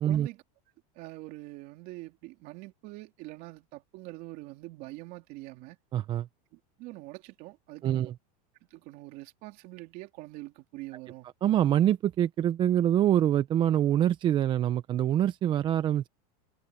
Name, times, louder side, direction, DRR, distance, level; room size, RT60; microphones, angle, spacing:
voice 1, 0.1-0.4 0.9-5.8 6.5-8.1 8.7-11.3, right 20 dB, 50° right, 3.2 m, -44 dB
voice 2, 5.9-6.3 7.8-8.1 11.4-16.1, right 11 dB, 25° right, 0.5 m, -25 dB
supercardioid pair, 150°, 19 cm